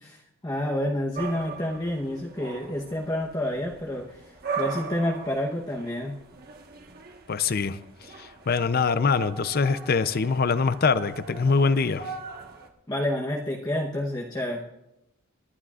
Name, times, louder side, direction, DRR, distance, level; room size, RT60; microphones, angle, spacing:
voice 1, 0.0-6.2 12.9-14.6, left 1 dB, 20° left, -2 dB, 0.9 m, -29 dB
sound 1, 1.1-12.7, right 5 dB, 45° right, 1.3 m, -39 dB
voice 2, 7.3-7.8 8.2-12.1, left 5 dB, 45° left, 13 dB, 0.5 m, -24 dB
27.0 x 11.5 x 2.4 m, 0.88 s
head